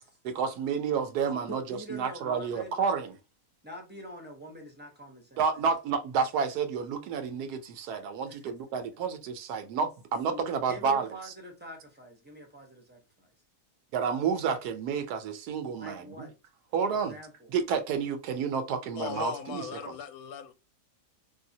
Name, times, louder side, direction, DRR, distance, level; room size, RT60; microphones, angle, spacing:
voice 1, 0.2-1.6 1.9-3.1 5.4-11.1 13.9-16.3 16.7-17.2 17.5-19.6, right 6 dB, 80° right, 1.1 m, -30 dB
voice 2, 1.5-2.8 3.6-5.4 8.3-8.5 10.3-13.3 15.8-16.3 16.9-17.5, equal, 10° right, 0.6 m, -45 dB
voice 3, 18.9-20.5, left 9 dB, 70° left, 1.0 m, -38 dB
3.4 x 2.7 x 2.7 m
omnidirectional pair, 1.7 m